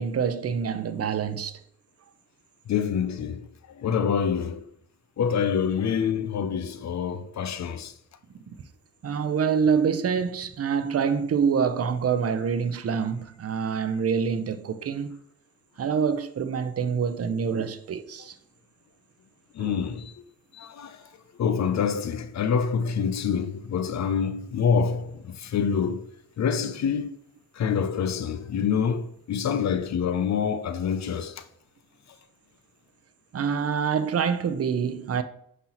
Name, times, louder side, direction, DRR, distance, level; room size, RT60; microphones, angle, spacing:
voice 1, 0.0-1.6 8.5-8.6 9.0-15.2 15.8-18.3 19.6-19.7 33.3-35.2, right 6 dB, 45° right, 0.5 m, -26 dB
voice 2, 2.7-4.7 5.2-7.9 19.5-20.2 20.5-21.0 21.4-27.1 27.5-31.4, left 7 dB, 55° left, 0.5 m, -26 dB
5.4 x 2.9 x 2.9 m
cardioid pair, 50°, 33 cm